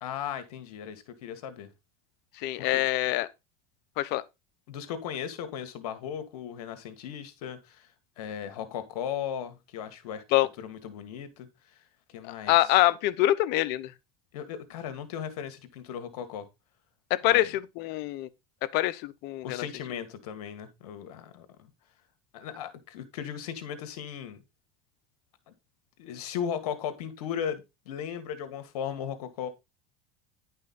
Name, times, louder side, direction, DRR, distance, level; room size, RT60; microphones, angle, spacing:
voice 1, 0.0-1.7 2.6-2.8 4.7-7.9 8.2-10.2 10.6-11.8 12.1-12.5 14.3-16.5 17.2-17.5 19.4-21.7 22.3-24.4 25.5-25.6 26.0-29.5, left 8 dB, 85° left, 1.7 m, -37 dB
voice 2, 2.3-3.3 4.0-4.2 10.3-10.5 12.2-13.9 17.1-18.3 18.6-19.7, left 15 dB, 60° left, 0.8 m, -25 dB
10.5 x 5.5 x 4.1 m
supercardioid pair, 105°, 19 cm